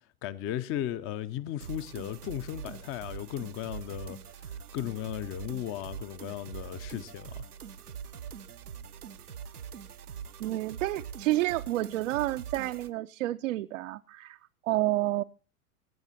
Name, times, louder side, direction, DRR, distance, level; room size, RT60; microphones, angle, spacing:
voice 1, 0.2-4.2 4.7-7.4, left 12 dB, 30° left, 0.7 m, -36 dB
sound 1, 1.6-12.9, right 7 dB, 90° right, 0.8 m, -43 dB
voice 2, 10.4-14.4 14.6-15.2, right 16 dB, 60° right, 0.6 m, -29 dB
18.5 x 8.8 x 4.3 m
figure-of-eight pair, 95°, 44 cm